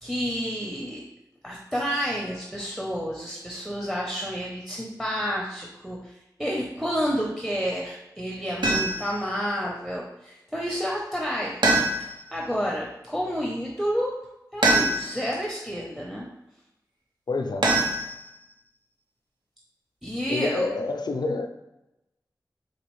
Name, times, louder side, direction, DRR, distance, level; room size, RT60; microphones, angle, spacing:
voice 1, 0.0-1.0 1.4-6.1 6.4-11.5 12.3-14.1 14.5-16.3 20.0-20.7, equal, ahead, -3 dB, 0.6 m, -30 dB
sound 1, 8.6-9.2 11.6-12.3 14.6-15.3 17.6-18.5, right 2 dB, 80° right, 0.7 m, -23 dB
voice 2, 17.3-17.6 20.3-21.5, left 3 dB, 70° left, 6 dB, 0.4 m, -27 dB
4.1 x 2.5 x 3.0 m, 0.93 s
cardioid pair, 45°, 8 cm